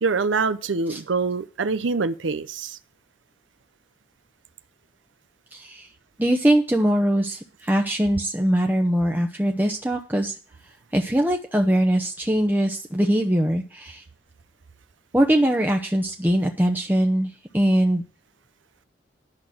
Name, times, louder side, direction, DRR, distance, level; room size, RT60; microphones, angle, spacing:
voice 1, 0.0-2.8, right 4 dB, 85° right, 0.7 m, -25 dB
voice 2, 5.5-5.9 6.2-10.3 10.6-14.0 15.1-18.0, right 1 dB, 10° right, 0.8 m, -22 dB
11.0 x 6.0 x 7.8 m
head